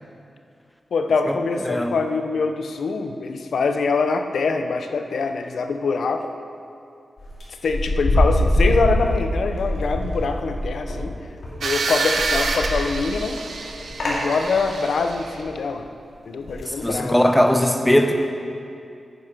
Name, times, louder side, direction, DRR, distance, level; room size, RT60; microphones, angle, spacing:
voice 1, 0.9-6.3 7.6-11.1 11.6-13.4 14.0-15.9 16.2-17.2, left 4 dB, 90° left, 7 dB, 0.7 m, -24 dB
voice 2, 1.6-2.0 16.7-18.1, equal, 5° left, 5 dB, 0.7 m, -19 dB
sound 1, 7.2-11.0 11.4-15.4 16.4-16.9, left 1 dB, 65° left, 2.8 m, -24 dB
sound 2, 11.6-15.4, right 3 dB, 85° right, 0.8 m, -27 dB
9.9 x 9.3 x 5.2 m, 2.5 s
wide cardioid pair, 135°, 0 cm